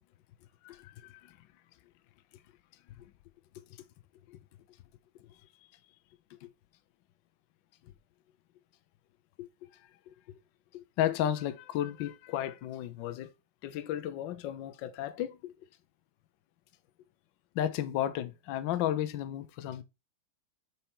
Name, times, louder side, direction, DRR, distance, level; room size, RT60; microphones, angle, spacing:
voice 1, 0.6-1.4 4.3-4.4 6.4-6.5 9.4-9.5 10.1-10.2 10.7-13.3 13.6-15.5 17.5-19.8, left 11 dB, 70° left, 1.2 m, -33 dB
6.3 x 4.6 x 4.5 m
omnidirectional pair, 2.4 m